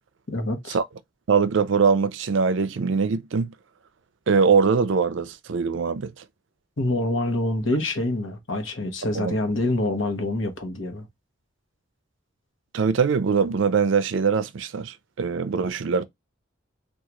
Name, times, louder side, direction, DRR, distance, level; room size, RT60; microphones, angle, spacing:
voice 1, 0.3-0.8 6.8-11.1, left 1 dB, 75° left, 1.0 m, -26 dB
voice 2, 1.3-3.5 4.3-6.2 9.1-9.4 12.7-16.0, right 5 dB, 70° right, 0.4 m, -22 dB
3.7 x 2.4 x 2.9 m
head